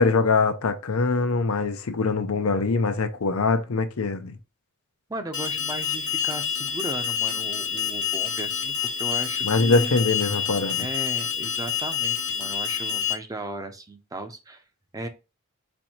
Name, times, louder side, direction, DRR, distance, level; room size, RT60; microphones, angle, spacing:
voice 1, 0.0-4.3 9.4-10.9, left 4 dB, 85° left, 0.6 m, -23 dB
voice 2, 5.1-10.0 10.8-14.6 14.9-15.1, right 1 dB, 15° right, 0.6 m, -36 dB
Alarm, 5.3-13.1, left 8 dB, 70° left, 1.1 m, -28 dB
4.4 x 2.7 x 4.3 m
head